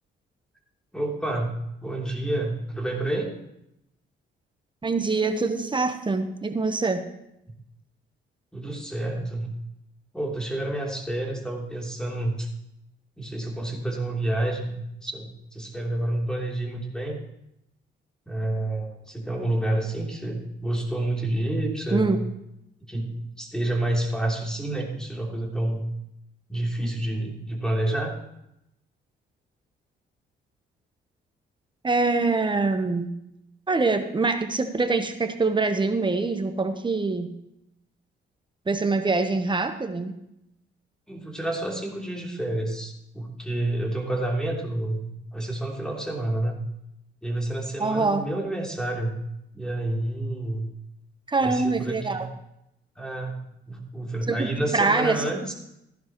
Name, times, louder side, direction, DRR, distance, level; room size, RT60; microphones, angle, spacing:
voice 1, 0.9-1.5 1.8-3.4 8.5-9.5 10.1-12.5 13.2-14.7 15.0-17.2 18.3-22.1 22.8-25.8 26.5-28.1 41.1-46.6 47.2-49.2 49.5-50.7 51.4-52.2 53.0-53.4 53.7-55.5, right 1 dB, 5° left, -1 dB, 3.2 m, -29 dB
voice 2, 4.8-7.0 21.9-22.2 31.8-33.1 33.7-37.3 38.7-40.1 47.8-48.3 51.3-52.3 54.3-55.2, right 3 dB, 25° right, 7 dB, 1.1 m, -24 dB
15.0 x 11.0 x 3.1 m, 0.81 s
cardioid pair, 90°, 20 cm